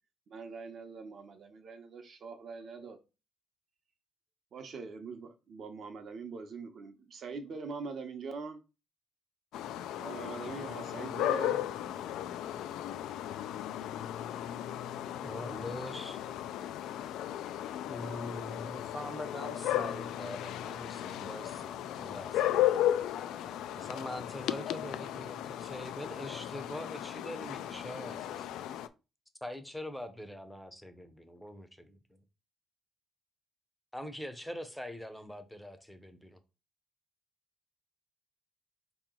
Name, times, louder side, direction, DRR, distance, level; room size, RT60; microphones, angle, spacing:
voice 1, 0.3-3.0 4.5-8.6 9.9-11.6, right 4 dB, 45° right, 0.8 m, -43 dB
sound 1, 9.5-28.9, left 12 dB, 85° left, 0.3 m, -35 dB
voice 2, 15.2-16.2 17.9-22.6 23.8-28.5 29.4-32.2 33.9-36.4, left 1 dB, ahead, 0.6 m, -43 dB
voice 3, 17.2-18.3 23.1-24.3, left 7 dB, 55° left, 0.7 m, -55 dB
4.7 x 2.9 x 3.7 m
cardioid pair, 150°, 0 cm